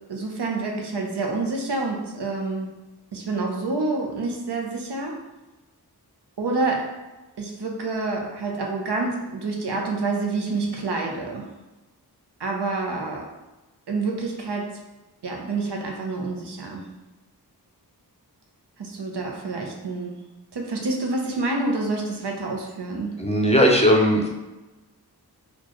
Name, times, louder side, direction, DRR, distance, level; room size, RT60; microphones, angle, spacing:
voice 1, 0.1-2.7 3.1-5.1 6.4-6.9 7.4-11.5 12.4-13.3 13.9-14.7 15.2-16.8 18.8-20.2 20.5-23.2, right 3 dB, 85° right, 0 dB, 0.7 m, -28 dB
voice 2, 23.2-24.3, equal, 15° left, 0 dB, 0.5 m, -18 dB
4.2 x 2.3 x 3.0 m, 1.1 s
wide cardioid pair, 70°, 40 cm